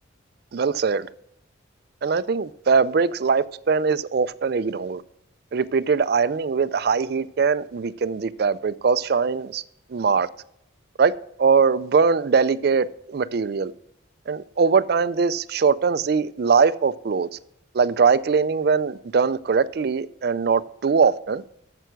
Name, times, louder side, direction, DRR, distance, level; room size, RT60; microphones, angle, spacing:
voice 1, 0.5-1.1 2.0-5.0 5.5-9.6 9.9-10.3 11.0-13.7 14.3-17.3 17.7-21.4, right 5 dB, 55° right, 0.4 m, -21 dB
9.0 x 6.8 x 6.2 m
head